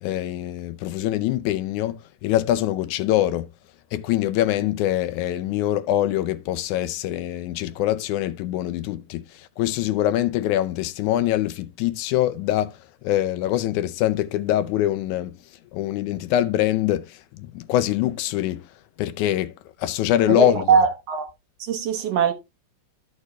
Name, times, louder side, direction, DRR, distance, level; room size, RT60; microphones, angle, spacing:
voice 1, 0.0-3.5 3.9-15.4 15.7-18.6 19.0-19.5 19.8-20.7, left 13 dB, 80° left, 2.0 m, -24 dB
voice 2, 20.3-21.3 21.6-22.3, right 6 dB, 65° right, 1.8 m, -21 dB
13.0 x 6.5 x 2.3 m
omnidirectional pair, 3.6 m